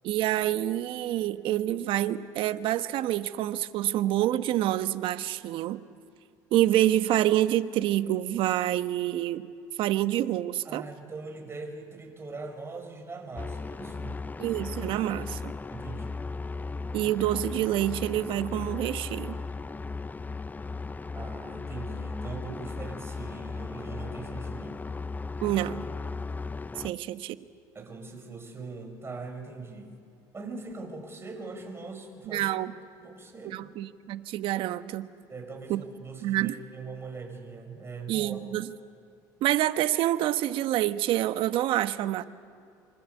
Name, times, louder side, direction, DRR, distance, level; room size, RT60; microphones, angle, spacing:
voice 1, 0.0-5.8 6.5-9.5 9.8-10.8 14.4-15.5 16.9-19.4 25.4-25.8 26.8-27.4 32.3-32.7 33.4-35.1 35.7-35.8 36.2-36.6 38.1-38.7 39.4-42.2, right 13 dB, 70° right, 11 dB, 1.1 m, -27 dB
voice 2, 10.6-14.2 15.7-16.2 21.1-24.8 26.9-27.0 27.7-29.9 30.3-32.5 33.0-33.7 35.3-38.4, right 3 dB, 25° right, 4 dB, 6.6 m, -41 dB
sound 1, 13.4-26.9, left 4 dB, 20° left, 0.6 m, -36 dB
27.5 x 25.5 x 8.4 m, 2.3 s
supercardioid pair, 80°, 9 cm